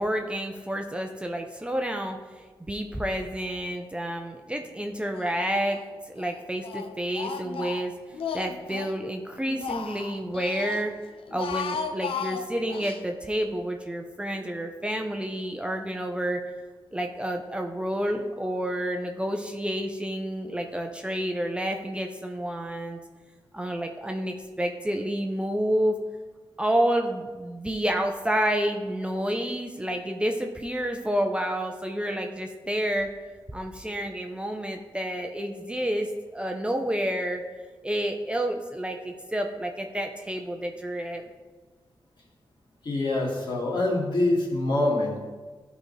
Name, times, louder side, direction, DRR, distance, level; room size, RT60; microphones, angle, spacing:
voice 1, 0.0-2.2 2.6-5.8 6.1-7.9 8.3-10.9 11.3-16.4 16.9-23.0 23.5-26.0 26.6-33.1 33.5-37.4 37.8-41.2, equal, 10° right, 3 dB, 0.6 m, -29 dB
Speech, 5.1-5.9 6.2-9.0 9.4-10.8 11.2-13.0, left 6 dB, 85° left, 0.5 m, -35 dB
voice 2, 42.8-45.2, left 2 dB, 60° left, -3 dB, 2.3 m, -25 dB
13.0 x 5.0 x 3.3 m, 1.4 s
wide cardioid pair, 95°, 9 cm